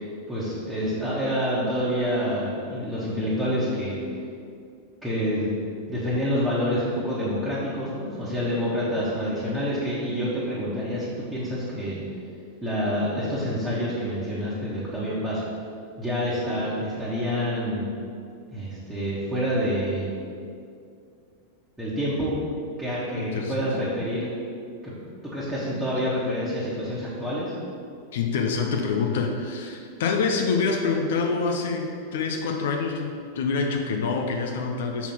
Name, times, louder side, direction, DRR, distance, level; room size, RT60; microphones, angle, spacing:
voice 1, 0.3-4.0 5.0-5.6 5.9-12.0 12.6-15.4 16.0-17.9 18.5-20.1 21.8-22.4 22.8-24.4 24.8-24.9 25.2-27.5, equal, 5° right, -11 dB, 1.5 m, -27 dB
voice 2, 23.2-23.6 28.1-35.1, left 4 dB, 55° left, 3 dB, 0.6 m, -26 dB
5.8 x 4.1 x 5.6 m, 2.4 s
figure-of-eight pair, 90°, 0 cm